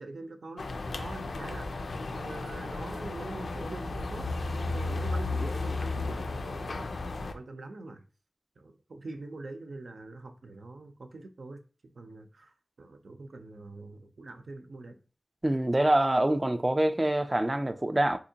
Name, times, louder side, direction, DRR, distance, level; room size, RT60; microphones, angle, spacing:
voice 1, 0.0-4.3 4.5-6.9 7.3-8.0 8.6-12.5 12.8-15.0, right 2 dB, 80° right, 0.5 m, -44 dB
sound 1, 0.6-7.3, left 3 dB, 85° left, 0.3 m, -34 dB
voice 2, 15.4-18.2, right 1 dB, 25° right, 0.3 m, -25 dB
3.6 x 2.8 x 2.7 m
wide cardioid pair, 80°, 0 cm